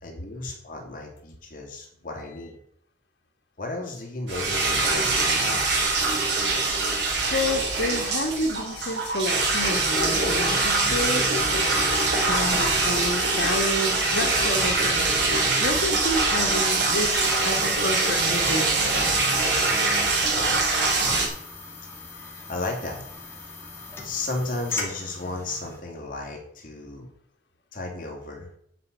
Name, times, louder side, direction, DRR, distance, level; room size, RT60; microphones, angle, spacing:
voice 1, 0.0-2.6 3.6-5.7 22.1-23.0 24.0-27.1 27.7-28.5, left 2 dB, 50° left, 0 dB, 2.5 m, -34 dB
sound 1, 4.3-21.3, right 3 dB, 80° right, 3.3 m, -23 dB
voice 2, 7.3-11.3 12.1-15.1 15.6-19.1, left 1 dB, 80° left, 2 dB, 1.5 m, -29 dB
sound 2, 17.1-25.8, left 2 dB, 15° left, 2.4 m, -38 dB
9.5 x 5.5 x 8.2 m, 0.69 s
head